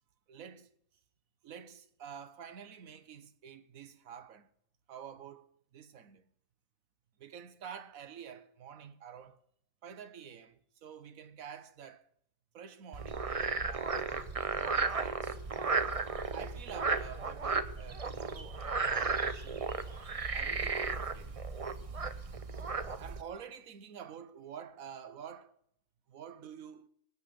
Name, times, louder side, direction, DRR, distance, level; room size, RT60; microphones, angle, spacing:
voice 1, 0.3-0.7 1.4-4.5 4.9-6.2 7.2-9.4 9.8-12.1 12.5-15.9 16.3-19.7 20.3-21.4 23.0-25.5 26.1-26.9, right 8 dB, 80° right, 1.4 m, -49 dB
Frog, 12.9-23.2, right 4 dB, 30° right, 0.7 m, -34 dB
18.5 x 9.5 x 6.9 m
omnidirectional pair, 1.4 m